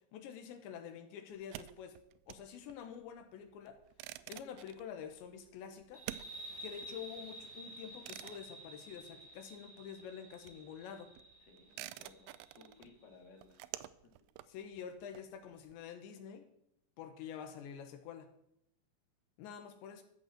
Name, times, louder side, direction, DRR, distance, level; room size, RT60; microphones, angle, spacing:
voice 1, 0.1-2.0 2.3-3.8 4.3-6.0 6.6-11.1 14.5-16.5 17.0-18.3 19.4-20.0, left 8 dB, 80° left, 8 dB, 3.4 m, -48 dB
sound 1, 1.3-9.7 9.9-15.7, right 16 dB, 85° right, 2.9 m, -51 dB
sound 2, 5.9-13.1, right 1 dB, 70° right, 6.0 m, -51 dB
voice 2, 11.4-13.6 14.0-14.1, left 4 dB, 35° left, 1 dB, 1.8 m, -60 dB
14.0 x 6.4 x 7.4 m, 0.78 s
omnidirectional pair, 5.2 m